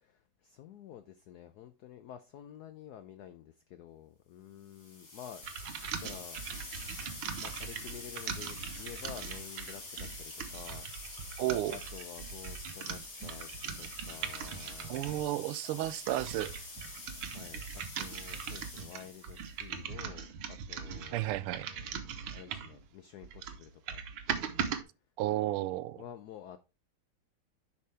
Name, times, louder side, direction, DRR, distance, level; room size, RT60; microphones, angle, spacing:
voice 1, 0.0-5.4 6.0-6.4 7.4-11.4 11.7-15.3 17.2-17.7 18.0-24.0 26.0-26.6, left 10 dB, 85° left, 0.8 m, -50 dB
sound 1, 4.7-19.6, left 3 dB, 35° left, 1.8 m, -47 dB
sound 2, 5.4-15.3 15.8-22.8 23.2-24.8, right 7 dB, 70° right, 1.7 m, -40 dB
voice 2, 11.4-11.8 14.9-16.5 21.1-21.7 25.2-26.0, right 14 dB, 90° right, 1.5 m, -32 dB
11.0 x 5.7 x 3.3 m
omnidirectional pair, 2.4 m